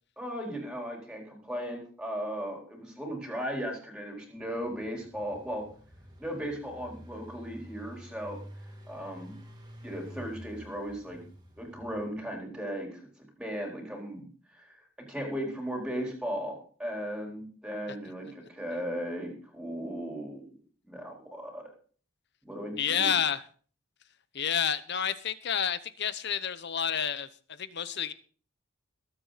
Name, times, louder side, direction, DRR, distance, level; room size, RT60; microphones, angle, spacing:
voice 1, 0.2-5.6 6.2-8.4 8.9-9.3 9.8-11.2 11.6-13.1 13.4-14.2 14.6-14.7 15.1-20.5 20.8-21.6 22.4-23.1, equal, 5° right, 4.1 m, -36 dB
Engine, 4.4-12.4, equal, 20° right, 2.6 m, -49 dB
voice 2, 22.8-23.4 24.3-27.3 27.6-28.1, left 8 dB, 50° left, 0.9 m, -29 dB
21.0 x 8.2 x 4.2 m
head